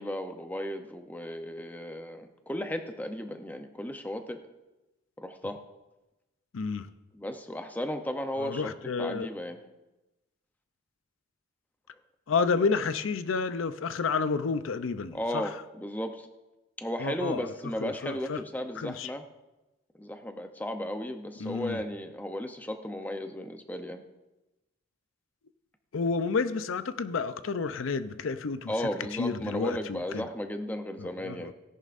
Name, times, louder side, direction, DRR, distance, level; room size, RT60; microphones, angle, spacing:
voice 1, 0.0-4.4 5.2-5.6 7.1-8.7 9.0-9.7 15.1-16.3 16.8-19.2 20.0-24.0 28.7-31.5, left 1 dB, 10° left, 6 dB, 0.6 m, -35 dB
voice 2, 6.5-6.9 8.4-9.3 12.3-15.5 17.0-17.5 17.8-18.4 18.8-19.1 21.4-21.8 25.9-28.7 29.1-30.3 31.0-31.5, left 4 dB, 70° left, 12 dB, 0.5 m, -30 dB
17.5 x 10.5 x 2.5 m, 1.0 s
head